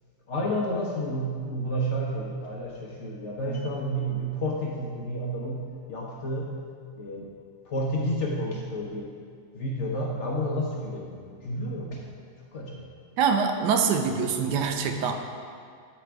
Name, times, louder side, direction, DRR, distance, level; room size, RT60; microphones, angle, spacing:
voice 1, 0.3-5.6 5.9-6.5 7.0-7.3 7.6-9.1 9.5-12.0 12.5-12.9, equal, 55° left, -2 dB, 0.9 m, -30 dB
voice 2, 13.2-15.2, right 6 dB, 80° right, 5 dB, 1.2 m, -24 dB
7.8 x 4.2 x 4.6 m, 2.1 s
omnidirectional pair, 1.8 m